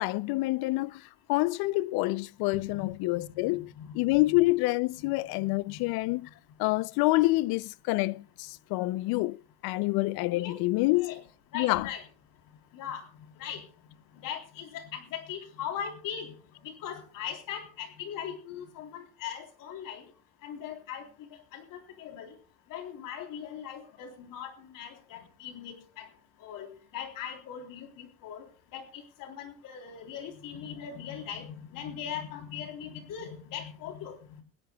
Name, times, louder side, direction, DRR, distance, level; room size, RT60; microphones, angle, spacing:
voice 1, 0.0-6.3 6.6-11.2 11.5-11.9, left 21 dB, 85° left, 0.6 m, -27 dB
voice 2, 3.8-4.4 5.4-5.9 10.3-11.2 11.5-12.0 12.7-13.0 13.4-13.6 14.2-16.3 16.6-20.0 20.4-21.1 21.5-22.3 22.7-26.1 26.4-26.7 26.9-28.4 28.7-34.2, left 8 dB, 65° left, 3.6 m, -40 dB
20.5 x 18.0 x 2.3 m
cardioid pair, 175°, 36 cm